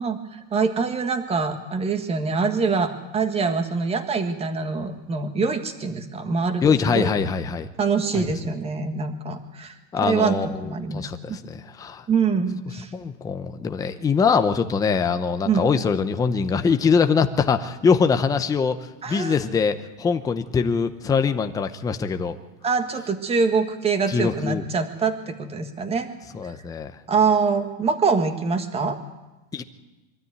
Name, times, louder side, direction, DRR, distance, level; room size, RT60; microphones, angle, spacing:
voice 1, 0.0-7.1 7.8-9.7 10.0-11.4 12.1-12.9 15.4-15.6 19.0-19.4 22.6-26.1 26.4-26.5 27.1-29.0, right 5 dB, 15° right, 7 dB, 1.7 m, -24 dB
voice 2, 6.6-7.7 8.1-8.3 9.9-12.1 12.9-22.4 24.1-24.7 26.3-26.9 29.5-29.6, left 5 dB, 10° left, 8 dB, 0.7 m, -23 dB
23.5 x 13.5 x 9.5 m, 1.1 s
supercardioid pair, 150°, 39 cm